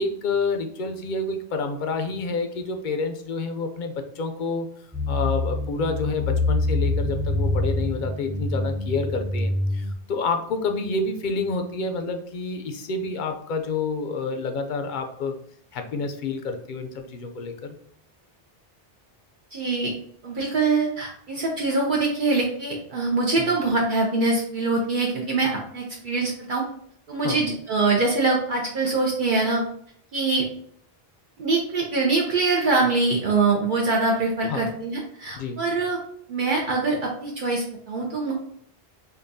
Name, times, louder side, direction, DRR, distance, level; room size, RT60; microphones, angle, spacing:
voice 1, 0.0-4.7 5.1-15.3 15.7-17.8 23.4-23.5 27.1-27.4 34.5-34.7 35.4-35.6, left 4 dB, 60° left, 6 dB, 0.6 m, -28 dB
sound 1, 4.9-9.9, left 2 dB, 10° right, 0.4 m, -25 dB
voice 2, 19.5-19.9 20.2-26.6 27.1-29.6 30.1-30.5 31.4-36.0 36.3-38.3, right 3 dB, 55° right, -2 dB, 0.8 m, -24 dB
5.2 x 2.3 x 2.6 m, 0.64 s
omnidirectional pair, 1.0 m